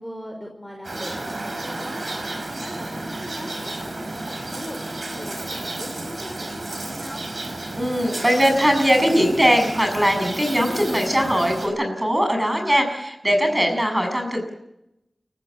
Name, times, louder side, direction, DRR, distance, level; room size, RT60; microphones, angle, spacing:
voice 1, 0.0-7.2, equal, ahead, 1 dB, 5.1 m, -39 dB
sound 1, 0.8-11.7, right 2 dB, 55° right, 5.8 m, -32 dB
voice 2, 7.8-14.5, equal, 15° right, 4 dB, 7.3 m, -20 dB
29.5 x 15.5 x 7.5 m, 0.87 s
wide cardioid pair, 70°, 0 cm